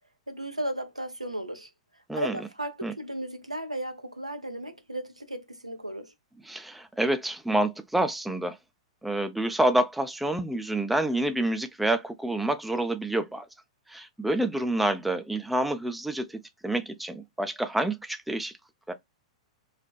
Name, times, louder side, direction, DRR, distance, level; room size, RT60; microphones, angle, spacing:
voice 1, 0.3-1.7 2.1-6.1, right 1 dB, 90° right, 0.4 m, -35 dB
voice 2, 6.5-8.6 9.0-13.5 13.9-18.6 18.9-19.0, right 1 dB, 5° right, 0.3 m, -28 dB
2.6 x 2.1 x 2.3 m
figure-of-eight pair, 100°, 3 cm